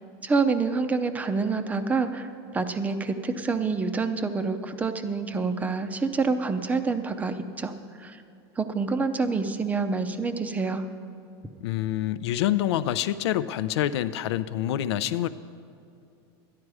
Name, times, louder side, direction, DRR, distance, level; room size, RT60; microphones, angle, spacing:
voice 1, 0.2-2.3 2.5-7.7 8.0-8.2 8.6-10.8, right 4 dB, 10° right, 8 dB, 0.5 m, -27 dB
voice 2, 11.6-15.3, left 12 dB, 85° left, 14 dB, 0.5 m, -26 dB
12.5 x 11.0 x 4.8 m, 2.6 s
supercardioid pair, 155°, 14 cm